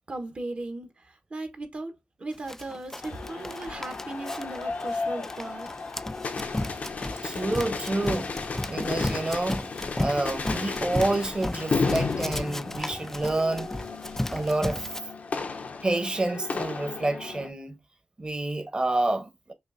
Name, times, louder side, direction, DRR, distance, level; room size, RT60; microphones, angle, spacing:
voice 1, 0.1-5.7, right 2 dB, 55° right, 1.2 m, -37 dB
Run, 2.5-15.0, left 1 dB, 15° left, 0.3 m, -34 dB
sound 1, 3.0-17.5, left 4 dB, 65° left, 0.7 m, -33 dB
voice 2, 7.2-8.3 8.7-9.7 10.0-13.7 14.3-14.9 15.8-17.8 18.2-19.5, right 2 dB, 35° right, 1.1 m, -28 dB
5.5 x 2.6 x 2.6 m
cardioid pair, 45°, 3 cm